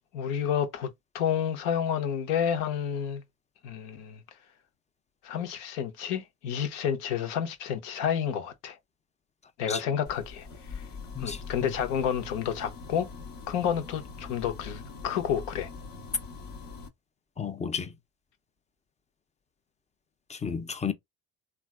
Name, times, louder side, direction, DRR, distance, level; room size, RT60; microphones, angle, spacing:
voice 1, 0.1-3.2 3.6-4.2 5.2-8.8 9.6-10.5 11.2-13.1 13.5-15.7, left 8 dB, 80° left, 0.7 m, -30 dB
sound 1, 10.0-16.9, left 4 dB, 50° left, 0.9 m, -43 dB
voice 2, 11.1-11.7 17.4-17.9 20.3-20.9, left 6 dB, 15° left, 0.4 m, -33 dB
3.2 x 2.3 x 2.3 m
hypercardioid pair, 55°, 43 cm